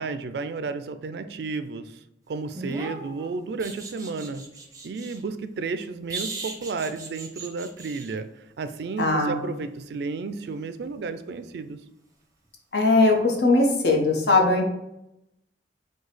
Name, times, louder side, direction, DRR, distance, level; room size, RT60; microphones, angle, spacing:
voice 1, 0.0-2.0 2.3-4.5 4.8-8.3 8.6-11.8, right 4 dB, 65° right, 11 dB, 0.3 m, -32 dB
sound 1, 2.5-5.2 6.1-8.1 10.8-10.9, right 3 dB, 20° right, 0.6 m, -38 dB
voice 2, 9.0-9.4 12.7-14.7, left 2 dB, 70° left, 1 dB, 0.9 m, -20 dB
4.8 x 2.3 x 4.0 m, 0.87 s
head